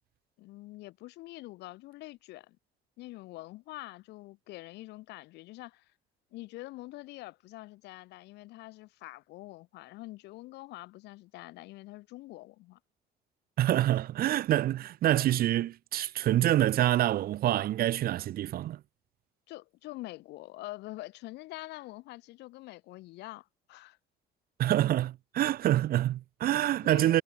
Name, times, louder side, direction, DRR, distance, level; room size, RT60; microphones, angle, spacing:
voice 1, 0.4-2.6 3.0-5.9 6.3-12.8 19.5-24.0 26.8-27.2, left 19 dB, 85° left, 3.2 m, -45 dB
voice 2, 13.6-18.8 24.6-27.2, right 13 dB, 60° right, 1.0 m, -26 dB
cardioid pair, 110°, 17 cm